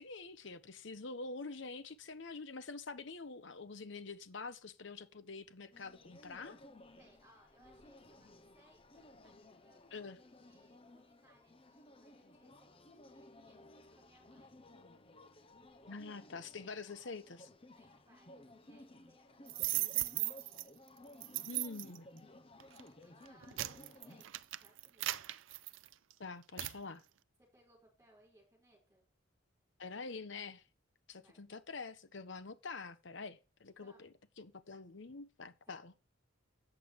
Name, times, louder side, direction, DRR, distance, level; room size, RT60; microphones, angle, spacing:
voice 1, 0.0-6.6 9.9-10.2 15.9-17.5 21.5-22.1 26.2-27.0 29.8-30.6 31.1-34.1 34.4-35.9, left 4 dB, 65° left, 0.9 m, -46 dB
sound 1, 5.7-24.2, left 1 dB, 30° left, 0.9 m, -58 dB
voice 2, 7.0-14.6 17.7-20.6 23.0-25.3 27.4-29.1 31.1-31.4 33.8-34.0 35.1-35.2 35.7-35.8, right 1 dB, 15° right, 4.9 m, -68 dB
sound 2, 19.5-20.6 21.2-22.0 22.6-22.8 23.3-26.1 26.6-26.8, right 16 dB, 70° right, 0.5 m, -37 dB
8.4 x 7.0 x 4.8 m
head